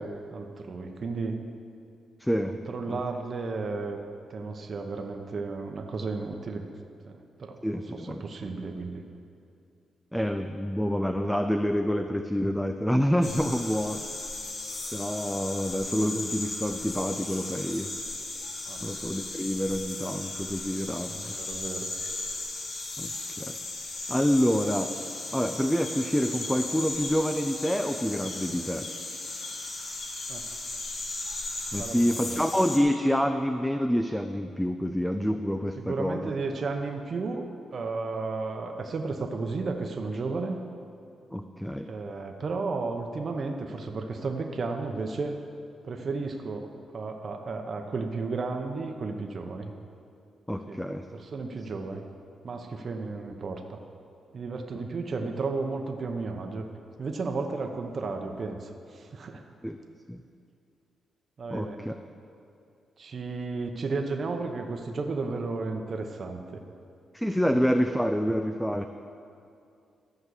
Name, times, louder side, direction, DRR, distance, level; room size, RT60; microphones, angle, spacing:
voice 1, 0.0-1.4 2.5-4.0 4.3-6.7 7.0-9.0 18.7-18.9 21.2-21.9 30.3-30.5 31.7-32.4 35.8-37.4 37.7-40.6 41.9-45.3 45.8-46.7 46.9-49.7 50.7-52.0 52.4-53.8 54.3-56.7 57.0-59.4 61.4-61.8 63.0-66.6, right 3 dB, 50° right, 4 dB, 1.0 m, -33 dB
voice 2, 2.2-2.6 2.9-3.0 7.6-8.2 10.1-14.0 14.9-17.9 18.8-21.3 23.0-23.1 23.4-23.6 24.1-24.9 25.3-28.9 31.7-36.3 41.3-41.9 50.5-51.0 59.6-59.8 60.1-60.2 61.5-61.9 67.1-68.9, equal, 5° left, 6 dB, 0.5 m, -27 dB
sound 1, 13.2-32.8, left 2 dB, 55° left, 1.9 m, -36 dB
14.0 x 5.4 x 8.1 m, 2.5 s
cardioid pair, 90°, 0 cm